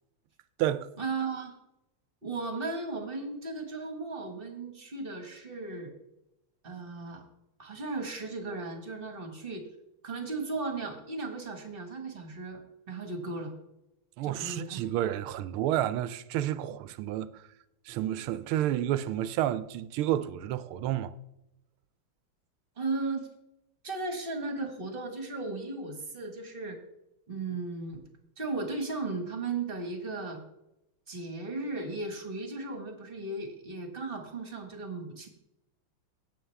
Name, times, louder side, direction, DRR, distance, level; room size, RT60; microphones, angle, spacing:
voice 1, 1.0-1.5 2.2-5.9 6.6-7.2 7.6-9.7 10.0-12.6 12.9-13.6 14.2-14.9 22.8-23.3 23.8-26.8 27.3-28.0 28.4-30.4 31.1-35.3, right 3 dB, 30° right, 1.4 m, -36 dB
voice 2, 14.2-17.4 17.9-21.1, right 12 dB, 80° right, 1.5 m, -30 dB
17.0 x 7.0 x 3.4 m
omnidirectional pair, 2.4 m